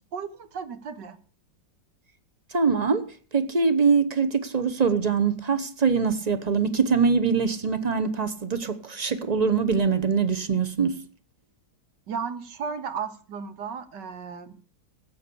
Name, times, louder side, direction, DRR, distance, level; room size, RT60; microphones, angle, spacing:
voice 1, 0.1-1.2 12.1-14.6, right 6 dB, 65° right, 1.8 m, -34 dB
voice 2, 2.5-3.1 3.3-11.0, right 5 dB, 30° right, 0.8 m, -23 dB
14.5 x 8.8 x 6.9 m
omnidirectional pair, 2.0 m